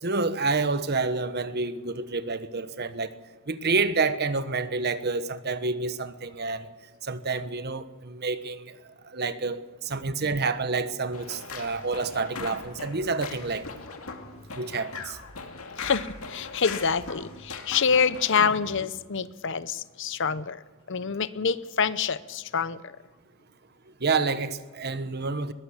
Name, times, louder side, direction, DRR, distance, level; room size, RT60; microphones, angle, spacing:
voice 1, 0.0-3.1 3.5-6.7 7.0-8.8 9.0-13.7 14.6-15.2 24.0-25.5, right 4 dB, 50° right, 1.2 m, -28 dB
sound 1, 11.1-18.8, left 4 dB, 80° left, 2.2 m, -39 dB
voice 2, 15.8-20.6 20.9-23.0, left 6 dB, 60° left, 0.8 m, -26 dB
21.5 x 18.0 x 7.3 m
head